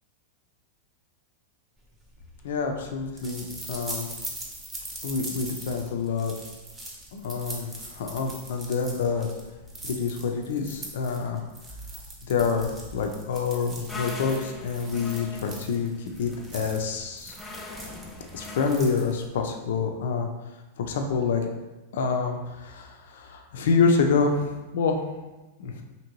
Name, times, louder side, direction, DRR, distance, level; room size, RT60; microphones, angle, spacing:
sound 1, 2.0-19.4, right 1 dB, 20° right, 0.8 m, -41 dB
voice 1, 2.4-4.1 5.0-6.3 7.1-9.3 9.8-11.4 12.2-15.9 16.2-17.4 18.3-20.3 20.8-21.5 21.9-25.0 25.6-25.8, left 5 dB, 70° left, 3 dB, 0.4 m, -27 dB
sound 2, 13.9-19.1, left 2 dB, 15° left, 0.5 m, -41 dB
2.8 x 2.6 x 2.9 m, 1.1 s
hypercardioid pair, 105°, 0 cm